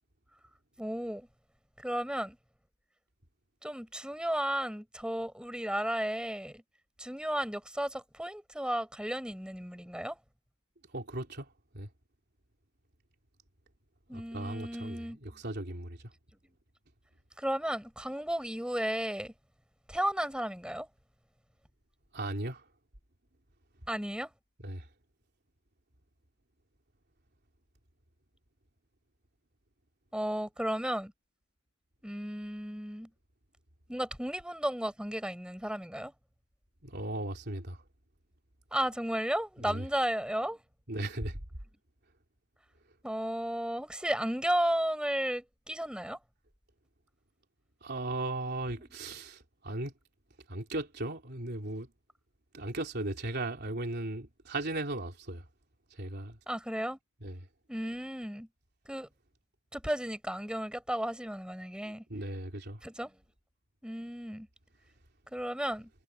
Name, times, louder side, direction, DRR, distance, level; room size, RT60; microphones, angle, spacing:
voice 1, 0.8-1.3 1.8-2.4 3.6-6.6 7.0-10.2 14.1-15.2 17.4-19.3 19.9-20.9 23.9-24.3 30.1-31.1 32.0-33.1 33.9-36.1 38.7-40.6 43.0-46.2 56.5-57.0 57.7-58.5 58.9-59.1 59.7-62.0 62.8-63.2 63.8-64.5 65.3-65.9, right 1 dB, 5° right, 5.9 m, -34 dB
voice 2, 10.9-11.9 14.1-16.0 22.1-22.6 24.6-24.9 36.8-37.8 39.6-39.8 40.9-41.4 47.8-49.9 50.5-51.9 52.5-55.4 55.9-56.4 57.2-57.4 61.8-62.8, right 2 dB, 50° right, 3.4 m, -37 dB
head